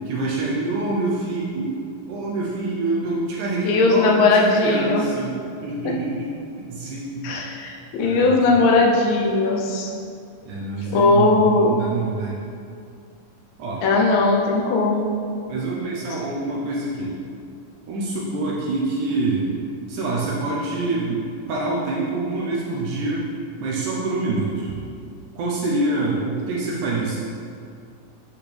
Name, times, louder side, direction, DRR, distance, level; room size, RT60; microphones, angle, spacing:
voice 1, 0.1-1.8 2.1-5.3 5.6-6.3 6.6-7.3 8.0-8.7 10.4-12.4 13.6-13.8 15.5-17.1 17.9-19.5 19.9-23.2 23.6-24.8 25.4-27.2, right 2 dB, 75° right, -4 dB, 2.1 m, -26 dB
voice 2, 3.6-5.0 7.2-9.9 10.9-11.7 13.8-15.1, left 3 dB, 85° left, -1 dB, 2.6 m, -18 dB
8.0 x 6.2 x 3.4 m, 2.4 s
omnidirectional pair, 4.0 m